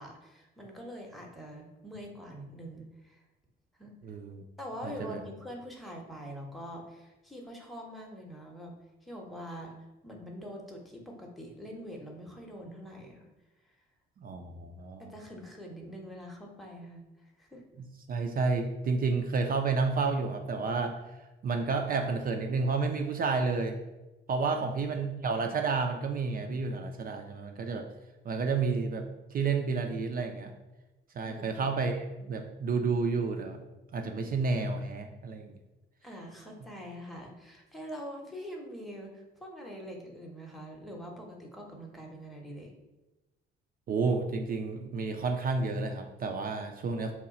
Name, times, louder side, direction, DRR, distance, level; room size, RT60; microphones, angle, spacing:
voice 1, 0.0-3.2 3.8-3.9 4.6-8.7 9.0-9.7 10.0-13.2 15.0-17.6 24.5-24.9 31.2-31.6 32.2-32.4 36.0-42.7, equal, ahead, -1 dB, 0.8 m, -44 dB
voice 2, 4.0-4.4 4.8-5.2 14.2-15.0 17.8-20.9 21.4-23.8 24.3-27.9 28.3-29.1 29.3-30.5 31.2-33.6 33.9-35.5 43.9-47.1, right 4 dB, 30° right, 4 dB, 0.4 m, -30 dB
3.0 x 2.3 x 3.9 m, 1.1 s
figure-of-eight pair, 45°, 29 cm